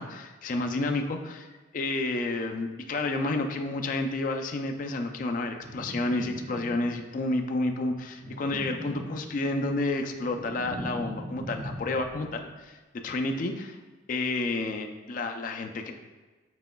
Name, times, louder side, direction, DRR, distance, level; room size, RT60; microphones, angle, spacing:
voice 1, 0.0-1.5 1.7-13.8 14.1-15.9, left 2 dB, 45° left, 5 dB, 0.4 m, -30 dB
sound 1, 5.6-7.1 8.1-9.6 10.0-12.4, equal, 75° right, 0.8 m, -40 dB
6.0 x 3.7 x 2.2 m, 1.3 s
head